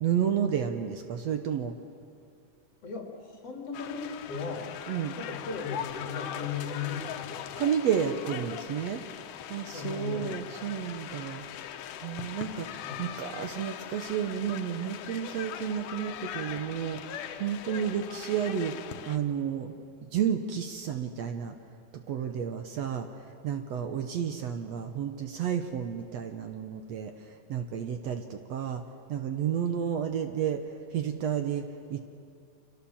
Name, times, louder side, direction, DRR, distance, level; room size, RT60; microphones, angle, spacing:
voice 1, 0.0-1.7 4.9-5.2 7.6-9.0 9.5-11.4 12.0-18.8 19.1-19.8 20.1-21.5 22.1-23.1 23.4-27.1 27.5-28.8 29.1-30.6 30.9-32.0, right 8 dB, 65° right, 6 dB, 2.1 m, -31 dB
voice 2, 2.8-4.7 5.1-7.6 9.7-10.5 12.8-13.0, left 5 dB, 50° left, 1 dB, 3.8 m, -37 dB
sound 1, 3.7-19.2, left 10 dB, 80° left, 2.5 m, -40 dB
29.0 x 26.0 x 7.3 m, 2.4 s
omnidirectional pair, 3.6 m